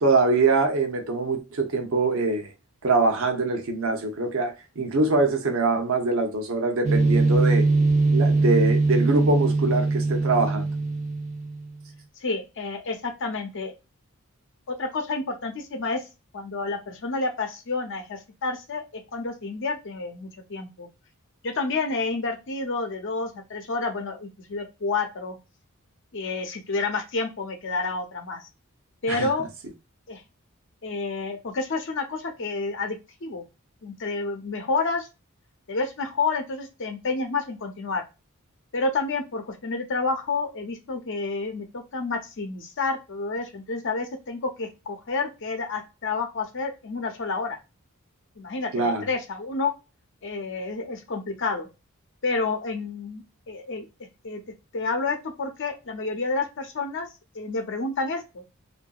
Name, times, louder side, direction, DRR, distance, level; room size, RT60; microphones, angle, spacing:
voice 1, 0.0-2.5 2.8-7.7 8.1-10.7 29.1-29.3 48.7-49.0, right 3 dB, 65° right, 0.7 m, -23 dB
sound 1, 6.8-11.7, right 3 dB, 35° right, 0.6 m, -22 dB
voice 2, 12.2-13.7 14.7-16.1 16.3-20.9 21.4-25.4 26.1-28.4 29.0-29.5 30.1-30.2 30.8-33.4 33.8-35.1 35.7-38.0 38.7-47.6 48.4-49.7 50.2-51.7 52.2-53.9 54.2-54.4 54.7-57.1 57.3-58.4, left 3 dB, 60° left, 0.7 m, -29 dB
2.7 x 2.6 x 2.2 m
head